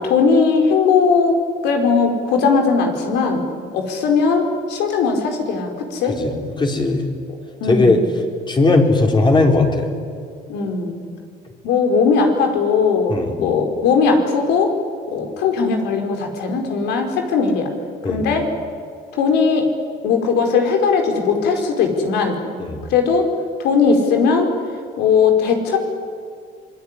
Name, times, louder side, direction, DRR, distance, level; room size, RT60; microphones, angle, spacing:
voice 1, 0.0-3.4 3.7-6.2 7.6-8.1 10.5-11.0 11.6-14.7 15.1-17.7 18.0-18.5 19.1-19.7 20.0-22.4 22.9-23.3 23.6-24.5 25.0-25.8, left 5 dB, 85° left, 4 dB, 4.9 m, -18 dB
voice 2, 6.6-7.0 7.7-8.0 8.5-9.9 13.1-13.4 18.0-18.3 22.6-22.8, left 3 dB, 25° left, 3 dB, 4.2 m, -17 dB
26.5 x 21.0 x 9.9 m, 2.3 s
cardioid pair, 110°, 17 cm